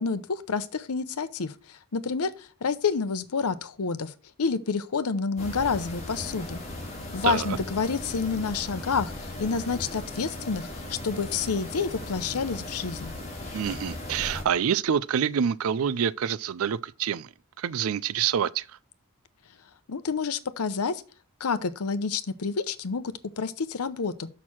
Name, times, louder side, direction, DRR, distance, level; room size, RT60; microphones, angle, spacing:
voice 1, 0.0-4.1 4.4-6.6 7.1-13.1 19.9-21.0 21.4-24.3, left 5 dB, 85° left, 0.7 m, -29 dB
sound 1, 5.4-14.4, left 1 dB, 30° left, 2.3 m, -37 dB
voice 2, 7.2-7.6 13.5-17.3 17.6-18.6, right 8 dB, 70° right, 0.4 m, -27 dB
6.4 x 5.9 x 5.9 m
head